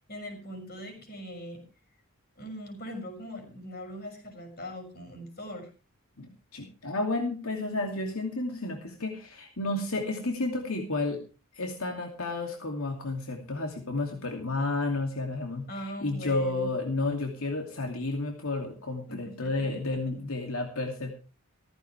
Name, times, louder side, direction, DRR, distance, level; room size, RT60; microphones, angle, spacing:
voice 1, 0.1-1.6 2.4-5.7 15.7-16.7 19.1-20.0, equal, 45° left, 6 dB, 6.3 m, -41 dB
voice 2, 6.2-11.2 11.5-21.1, left 2 dB, 85° left, 3 dB, 2.6 m, -31 dB
15.5 x 15.0 x 3.4 m, 0.33 s
head